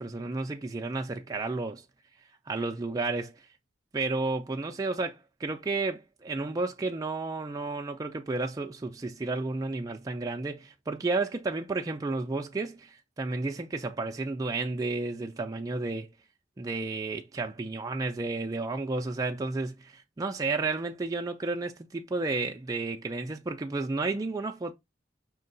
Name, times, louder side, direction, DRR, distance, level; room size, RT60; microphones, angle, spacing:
voice 1, 0.0-1.8 2.5-3.4 3.9-16.1 16.6-24.7, right 3 dB, 20° right, 0.3 m, -32 dB
5.3 x 2.2 x 3.8 m
head